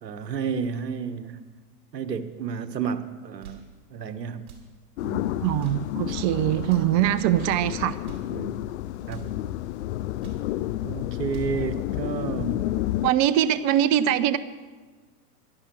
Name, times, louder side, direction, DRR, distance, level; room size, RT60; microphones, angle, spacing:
voice 1, 0.0-1.4 1.9-4.5 5.0-5.3 8.3-8.6 9.1-9.3 10.8-12.7, right 6 dB, 85° right, 11 dB, 1.2 m, -31 dB
sound 1, 3.4-3.7 4.4-4.7 5.4-5.9 6.6-7.0 7.8-8.3 9.0-9.3 10.0-10.5 11.1-11.6, right 8 dB, 60° right, 4.6 m, -47 dB
sound 2, 5.0-13.1, left 14 dB, 45° left, 0.4 m, -30 dB
voice 2, 5.4-8.0 13.0-14.4, right 12 dB, 35° right, 15 dB, 0.8 m, -22 dB
12.5 x 11.0 x 7.6 m, 1.4 s
hypercardioid pair, 105°, 49 cm